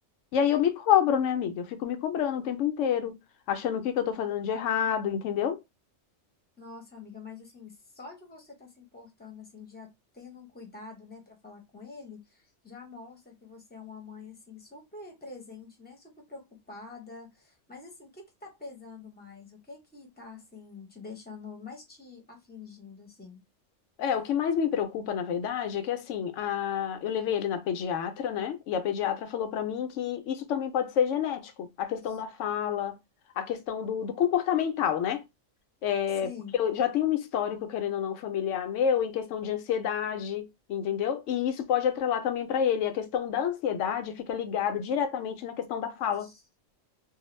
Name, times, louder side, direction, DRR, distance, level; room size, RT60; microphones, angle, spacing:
voice 1, 0.3-3.2 3.5-5.6 24.0-33.0 33.4-35.2 35.8-36.3 36.6-46.3, left 9 dB, 85° left, 0.9 m, -28 dB
voice 2, 6.6-23.4 32.0-32.2 36.2-36.5 46.2-46.4, left 4 dB, 10° left, 0.6 m, -46 dB
2.4 x 2.0 x 3.0 m
omnidirectional pair, 1.2 m